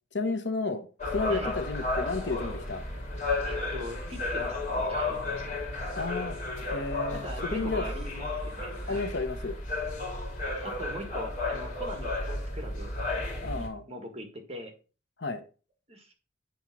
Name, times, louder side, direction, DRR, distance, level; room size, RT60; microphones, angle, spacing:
voice 1, 0.1-0.9 1.1-2.8 6.0-6.4 6.7-7.2 7.5-7.8 8.9-9.6 13.4-13.8 15.2-15.4, left 3 dB, 65° left, 1.0 m, -32 dB
sound 1, 1.0-13.7, left 2 dB, 40° left, 2.5 m, -33 dB
voice 2, 3.4-5.9 7.1-9.1 10.6-12.9 13.4-14.7 15.9-16.1, equal, 30° right, 1.7 m, -41 dB
8.5 x 3.6 x 6.0 m
head